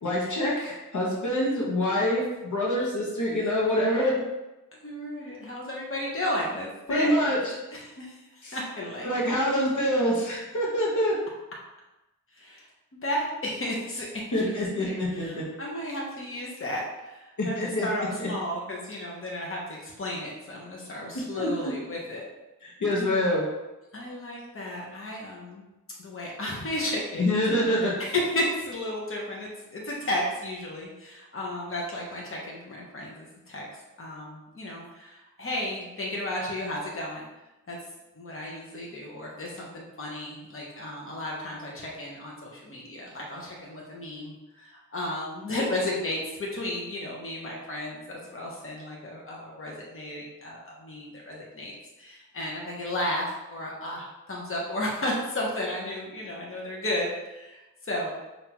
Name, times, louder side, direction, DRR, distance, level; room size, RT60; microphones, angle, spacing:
voice 1, 0.0-4.2 6.9-7.5 8.4-8.6 9.0-11.2 14.3-15.4 17.4-17.9 18.2-18.3 21.3-21.7 22.6-23.4 27.2-27.9, equal, 70° left, -4 dB, 1.2 m, -26 dB
voice 2, 4.8-7.1 7.7-9.3 12.4-12.6 13.0-22.2 23.9-25.6 26.0-27.4 27.8-33.6 34.0-37.2 37.7-37.8 38.2-48.0 48.3-51.7 52.0-58.2, left 1 dB, 45° left, -3 dB, 1.1 m, -33 dB
5.5 x 2.8 x 3.0 m, 1.0 s
wide cardioid pair, 65°, 31 cm